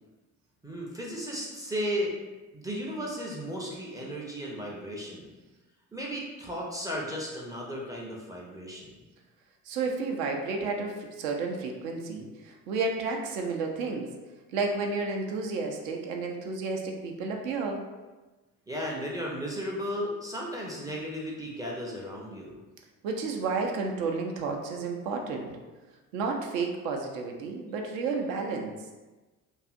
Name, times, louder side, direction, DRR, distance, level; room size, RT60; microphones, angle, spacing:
voice 1, 0.6-2.1 2.5-5.3 5.9-9.0 18.7-22.6, equal, 10° right, -3 dB, 0.4 m, -35 dB
voice 2, 9.7-14.1 14.5-17.8 23.0-25.6 26.1-28.8, right 4 dB, 70° right, 2 dB, 0.5 m, -31 dB
2.6 x 2.4 x 2.4 m, 1.2 s
figure-of-eight pair, 50°, 43 cm